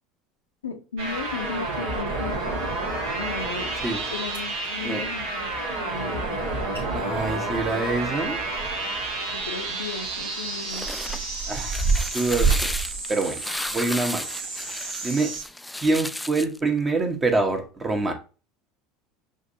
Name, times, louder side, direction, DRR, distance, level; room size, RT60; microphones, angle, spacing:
voice 1, 0.6-2.6 3.2-3.7 4.1-6.2 9.3-10.9, left 5 dB, 85° left, 5 dB, 0.6 m, -35 dB
sound 1, 1.0-15.4, right 2 dB, 70° right, 1.4 m, -31 dB
sound 2, 4.3-4.7 6.4-6.5 6.7-6.9 7.2-9.0 9.3-9.5 10.2-13.9 14.5-14.7 15.4-15.5, right 4 dB, 85° right, 1.4 m, -28 dB
voice 2, 6.9-8.4 11.5-11.8 12.1-12.5 13.1-13.4 13.7-14.2 15.0-15.3 15.7-18.1, right 3 dB, 25° right, 5 dB, 1.1 m, -25 dB
sound 3, 10.4-16.6, left 1 dB, 5° left, 0.3 m, -34 dB
6.2 x 2.6 x 2.6 m, 0.34 s
hypercardioid pair, 75°, 0 cm